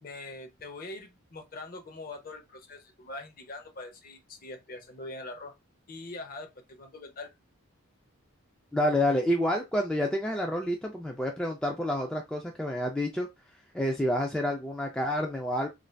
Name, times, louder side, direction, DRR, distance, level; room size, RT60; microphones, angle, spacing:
voice 1, 0.0-5.5 5.9-7.3, left 2 dB, 40° left, 0.6 m, -43 dB
voice 2, 8.7-13.3 13.7-15.7, left 1 dB, 5° left, 0.3 m, -28 dB
2.5 x 2.2 x 3.2 m
head